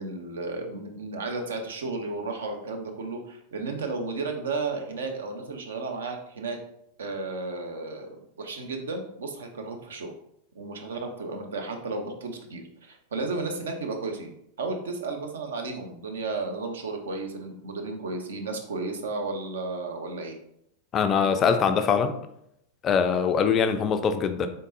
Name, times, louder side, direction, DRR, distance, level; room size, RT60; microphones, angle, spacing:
voice 1, 0.0-6.6 7.0-10.1 10.5-14.3 14.6-20.4, right 3 dB, 65° right, 4 dB, 0.6 m, -33 dB
voice 2, 20.9-22.1 22.8-24.5, left 6 dB, 30° left, 9 dB, 0.3 m, -23 dB
3.8 x 3.7 x 2.6 m, 0.76 s
figure-of-eight pair, 90°, 0 cm